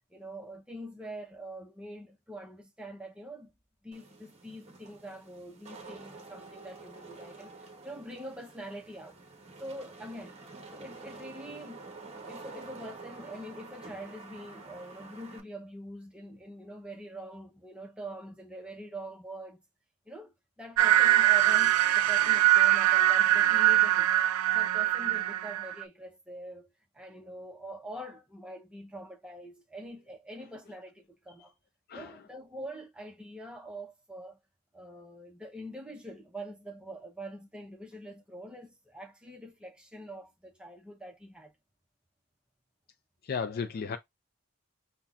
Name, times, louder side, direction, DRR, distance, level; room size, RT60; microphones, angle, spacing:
voice 1, 0.1-3.5 3.8-9.2 9.6-10.4 10.7-11.8 12.2-19.6 20.1-24.1 24.5-31.5 31.9-34.4 34.7-41.5, right 1 dB, 5° right, 0.6 m, -44 dB
Wind / Rain, 3.9-15.4, right 3 dB, 30° right, 0.8 m, -48 dB
sound 1, 20.8-25.8, right 13 dB, 90° right, 0.4 m, -23 dB
voice 2, 31.9-32.2 43.2-44.0, left 5 dB, 45° left, 0.4 m, -34 dB
5.5 x 2.2 x 2.3 m
head